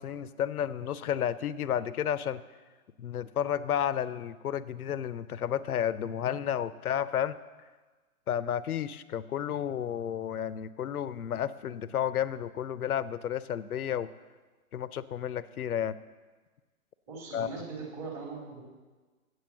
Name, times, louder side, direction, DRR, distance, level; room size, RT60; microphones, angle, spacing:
voice 1, 0.0-2.4 3.0-7.4 8.3-14.1 14.7-16.0 17.3-17.5, left 9 dB, 80° left, 16 dB, 0.6 m, -32 dB
voice 2, 17.1-18.6, right 4 dB, 30° right, -2 dB, 2.7 m, -40 dB
8.2 x 7.9 x 6.9 m, 1.3 s
hypercardioid pair, 125°, 44 cm